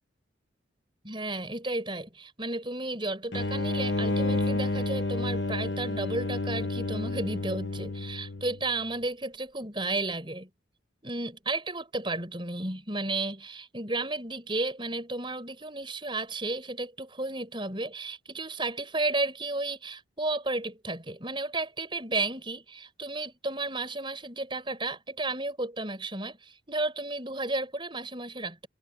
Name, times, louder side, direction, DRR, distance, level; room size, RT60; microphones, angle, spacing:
voice 1, 1.0-10.5 11.0-28.7, right 2 dB, 25° right, 7.1 m, -33 dB
sound 1, 3.3-8.7, left 2 dB, 65° left, 1.4 m, -30 dB
head